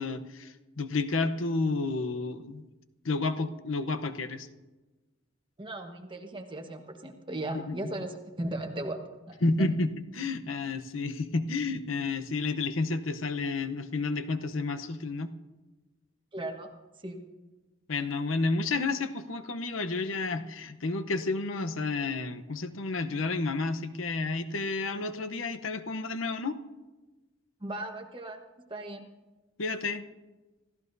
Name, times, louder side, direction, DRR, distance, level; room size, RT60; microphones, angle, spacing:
voice 1, 0.0-2.7 3.0-4.5 7.5-7.8 9.4-9.9 10.1-15.3 17.9-26.6 29.6-30.0, left 3 dB, 85° left, 9 dB, 0.9 m, -31 dB
voice 2, 5.6-9.7 16.3-16.7 17.0-17.2 27.6-28.4 28.7-29.1, right 1 dB, 25° right, 4 dB, 1.3 m, -37 dB
27.0 x 14.5 x 2.7 m, 1.2 s
head